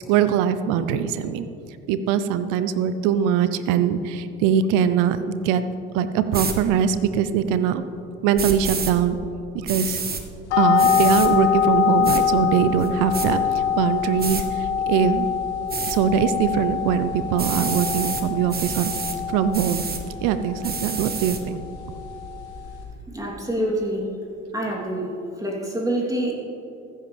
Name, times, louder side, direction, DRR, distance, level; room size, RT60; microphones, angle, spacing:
voice 1, 0.1-1.5 1.9-5.6 5.9-7.8 8.2-9.2 9.5-10.0 10.6-15.3 15.9-18.9 19.3-19.9 20.2-21.6, right 8 dB, 65° right, 12 dB, 0.8 m, -22 dB
sound 1, 6.3-6.6 8.4-8.9 9.7-10.2 10.8-11.3 12.0-12.2 12.8-13.3 14.2-14.4 15.7-16.0 17.4-18.2 18.5-19.2 19.5-20.0 20.6-21.4, right 5 dB, 30° right, 1.4 m, -28 dB
sound 2, 10.5-22.8, left 8 dB, 80° left, 2.1 m, -25 dB
voice 2, 23.1-24.1 24.5-25.1 25.4-26.3, right 1 dB, 10° right, -3 dB, 3.3 m, -26 dB
15.0 x 13.0 x 3.5 m, 2.9 s
hypercardioid pair, 60°, 34 cm